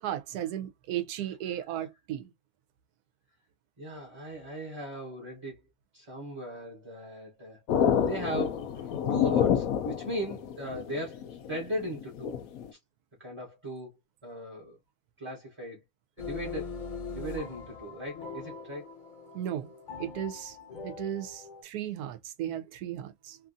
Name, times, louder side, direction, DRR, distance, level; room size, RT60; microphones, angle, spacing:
voice 1, 0.0-2.3 19.3-19.7 20.0-20.6 20.8-23.4, right 11 dB, 85° right, 1.1 m, -35 dB
voice 2, 3.8-5.6 5.9-7.6 8.0-8.7 9.1-12.4 13.2-13.9 14.2-14.8 15.2-15.8 16.2-16.7 17.1-18.9, equal, 25° right, 0.8 m, -38 dB
sound 1, 7.7-12.7, left 8 dB, 75° left, 1.0 m, -28 dB
sound 2, 16.2-21.6, left 5 dB, 40° left, 0.8 m, -41 dB
3.2 x 2.4 x 2.5 m
omnidirectional pair, 1.6 m